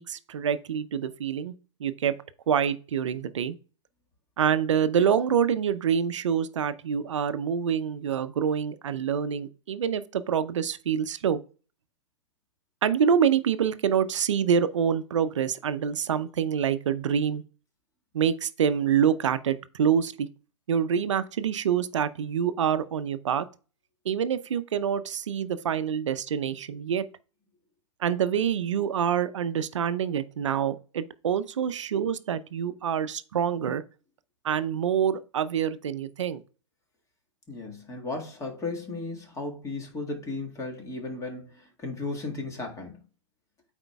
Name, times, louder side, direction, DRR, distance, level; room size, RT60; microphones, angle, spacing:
voice 1, 0.0-1.5 1.8-2.1 2.5-3.6 4.4-11.4 12.8-17.4 18.1-20.3 20.7-23.5 24.0-27.1 28.0-33.8 34.4-36.4, right 8 dB, 70° right, 0.6 m, -26 dB
voice 2, 37.5-43.0, left 3 dB, 20° left, 1.8 m, -35 dB
12.5 x 4.4 x 2.3 m
hypercardioid pair, 110°, 16 cm